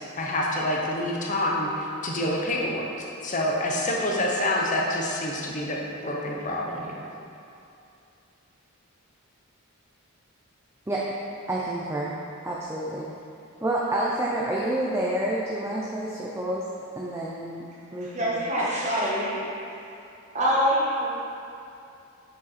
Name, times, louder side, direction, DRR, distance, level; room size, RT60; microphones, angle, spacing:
voice 1, 0.0-2.9 3.2-7.0, left 1 dB, 35° left, -2 dB, 0.6 m, -27 dB
voice 2, 11.5-12.2 12.4-13.1 13.6-16.6 17.0-17.7 17.9-18.4, right 1 dB, 10° right, -5 dB, 0.4 m, -28 dB
voice 3, 18.0-19.9 20.3-21.1, equal, 30° right, -6 dB, 1.3 m, -25 dB
7.0 x 5.1 x 4.2 m, 2.6 s
head